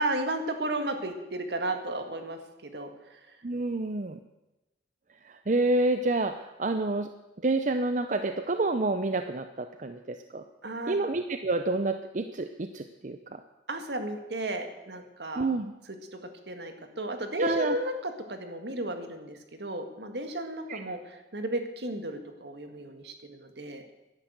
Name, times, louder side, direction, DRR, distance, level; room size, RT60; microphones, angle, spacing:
voice 1, 0.0-3.2 10.6-11.0 13.7-15.5 16.5-23.8, right 1 dB, 70° right, 6 dB, 1.9 m, -34 dB
voice 2, 3.4-4.2 5.2-7.1 7.4-10.4 10.9-13.4 15.4-15.7 17.4-17.8 20.7-20.8, right 2 dB, 45° right, 8 dB, 0.6 m, -28 dB
11.5 x 10.5 x 8.0 m, 1.0 s
head